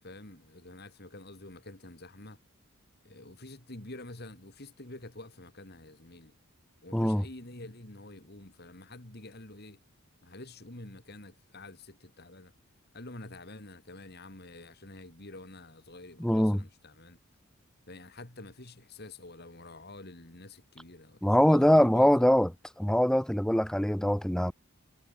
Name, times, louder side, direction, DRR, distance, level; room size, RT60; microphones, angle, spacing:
voice 1, 0.0-2.4 3.0-6.3 6.8-9.8 10.2-12.5 12.9-17.2 17.9-22.3, left 2 dB, 45° left, 2.9 m, -48 dB
voice 2, 6.9-7.2 16.2-16.6 21.2-22.5 22.8-24.5, equal, 5° left, 0.4 m, -23 dB
head